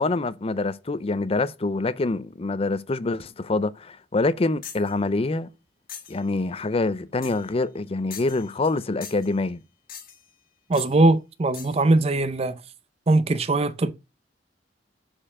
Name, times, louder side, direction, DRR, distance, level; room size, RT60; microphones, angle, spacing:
voice 1, 0.0-5.5 6.1-9.6, left 3 dB, 35° left, 0.5 m, -25 dB
Mysounds LG-FR Imane-diapason, 4.6-4.9 5.9-6.2 7.2-7.5 8.1-8.8 9.0-9.3 9.9-10.3 10.7-11.0 11.5-11.8, left 8 dB, 55° left, 1.6 m, -41 dB
voice 2, 10.7-12.6 13.1-13.9, right 2 dB, 35° right, 0.6 m, -21 dB
7.6 x 4.5 x 4.8 m
head